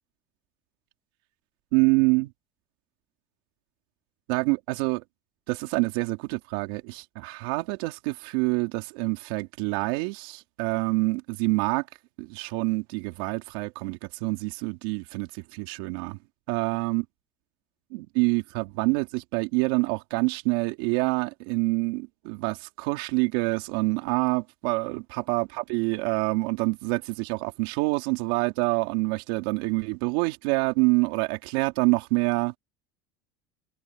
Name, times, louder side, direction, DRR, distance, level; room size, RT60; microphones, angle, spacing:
voice 1, 1.7-2.3 4.3-5.0 5.5-11.8 12.2-16.2 16.5-17.0 17.9-32.6, right 25 dB, 80° right, 3.1 m, -26 dB
supercardioid pair, 100°, 12 cm